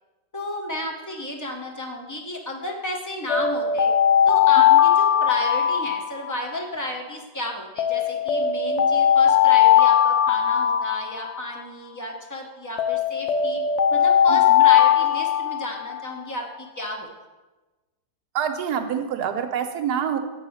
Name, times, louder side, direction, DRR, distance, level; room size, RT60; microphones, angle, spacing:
voice 1, 0.3-3.9 4.3-13.6 13.9-17.1, left 1 dB, 15° left, 1 dB, 0.6 m, -32 dB
Alarm, 3.3-6.6 7.8-11.6 12.8-16.0, left 9 dB, 90° left, 0.6 m, -19 dB
voice 2, 14.3-14.6 18.3-20.2, right 8 dB, 70° right, 6 dB, 1.2 m, -26 dB
7.0 x 5.5 x 6.2 m, 1.2 s
omnidirectional pair, 1.9 m